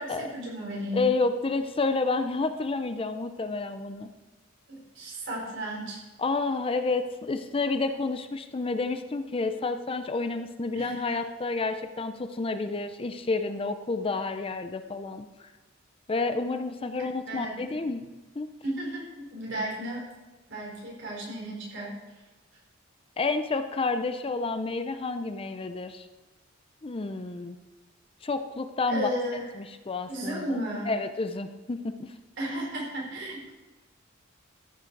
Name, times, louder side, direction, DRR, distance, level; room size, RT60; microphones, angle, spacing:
voice 1, 0.0-1.1 4.7-6.0 10.7-11.0 17.3-17.6 18.6-20.0 20.5-21.9 28.9-29.5 30.1-30.9 32.4-33.5, right 1 dB, 60° right, -3 dB, 4.4 m, -34 dB
voice 2, 0.9-4.1 6.2-15.3 16.1-18.0 18.4-18.5 23.2-26.1 26.8-27.6 28.2-29.2 29.5-30.6 30.9-32.1, left 3 dB, 25° left, 9 dB, 0.5 m, -30 dB
14.0 x 7.3 x 4.6 m, 1.2 s
head